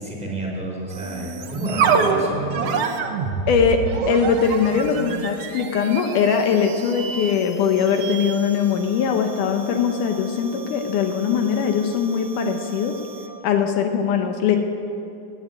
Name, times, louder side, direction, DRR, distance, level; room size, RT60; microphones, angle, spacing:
voice 1, 0.0-2.7, right 1 dB, ahead, -2 dB, 3.8 m, -29 dB
sound 1, 0.9-13.4, right 5 dB, 65° right, 1.6 m, -28 dB
voice 2, 3.5-13.0 13.4-14.6, left 6 dB, 75° left, 5 dB, 2.4 m, -21 dB
18.0 x 8.2 x 9.2 m, 3.0 s
omnidirectional pair, 3.8 m